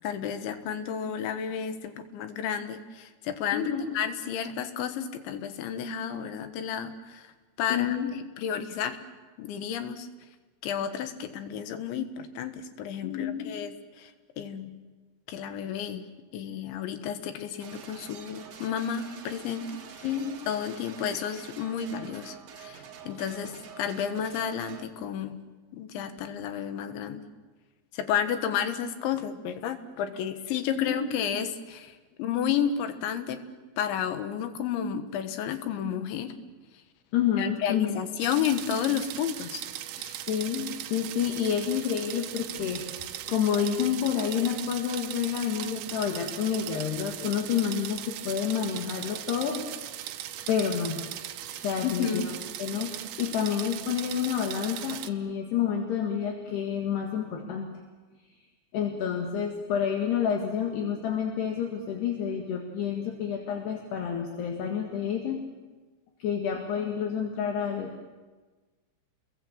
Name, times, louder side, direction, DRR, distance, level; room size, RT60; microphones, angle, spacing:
voice 1, 0.0-7.3 7.6-8.0 8.4-9.0 9.4-10.1 10.6-14.1 14.4-14.8 15.3-16.1 16.3-20.1 20.5-25.4 25.7-27.2 27.9-31.9 32.2-33.4 33.8-36.3 37.4-39.6 40.0-40.1 51.8-52.3, left 8 dB, 85° left, 9 dB, 3.8 m, -32 dB
voice 2, 3.5-3.9 7.7-8.1 13.0-13.6 20.0-20.3 30.8-31.1 37.1-38.0 40.3-49.6 50.5-51.0 51.6-52.2 52.6-57.7 58.7-65.4 66.2-67.9, left 8 dB, 70° left, 2 dB, 3.8 m, -29 dB
sound 1, 17.6-24.9, right 7 dB, 55° right, 2.0 m, -47 dB
sound 2, 38.2-55.1, right 12 dB, 75° right, 2.6 m, -39 dB
29.5 x 22.0 x 7.4 m, 1.3 s
omnidirectional pair, 5.2 m